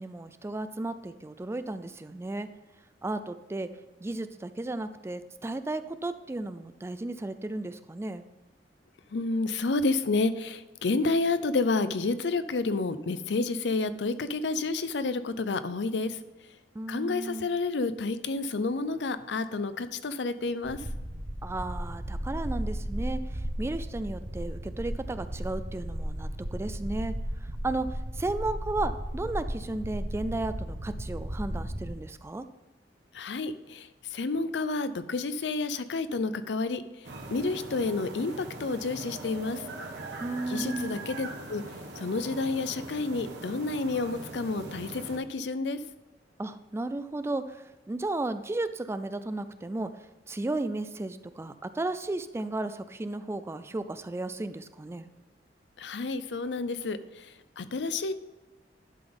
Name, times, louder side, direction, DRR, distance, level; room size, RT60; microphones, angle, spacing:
voice 1, 0.0-2.5 3.0-3.7 4.0-8.3 16.8-17.5 21.4-23.2 23.6-27.1 27.6-32.5 40.2-41.0 46.4-47.6 47.9-49.9 50.3-55.1, right 2 dB, 15° right, 12 dB, 0.3 m, -34 dB
voice 2, 9.1-16.2 16.9-20.8 33.1-36.8 37.3-39.6 40.5-41.6 42.0-45.8 55.8-57.3 57.6-58.1, left 3 dB, 80° left, 12 dB, 0.5 m, -30 dB
sound 1, 20.6-31.9, equal, 40° right, 1.0 m, -35 dB
sound 2, 37.0-45.2, right 2 dB, 85° right, 1.3 m, -41 dB
11.5 x 3.9 x 5.2 m, 1.1 s
head